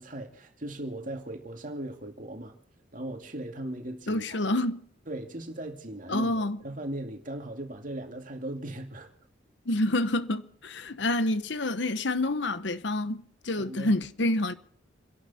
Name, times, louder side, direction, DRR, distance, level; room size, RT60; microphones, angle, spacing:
voice 1, 0.1-2.6 2.9-4.4 5.1-9.1 13.6-13.9, right 1 dB, 45° right, 2.6 m, -38 dB
voice 2, 4.1-4.8 6.1-6.6 9.7-14.5, left 1 dB, 65° left, 1.0 m, -28 dB
29.0 x 11.5 x 4.3 m
head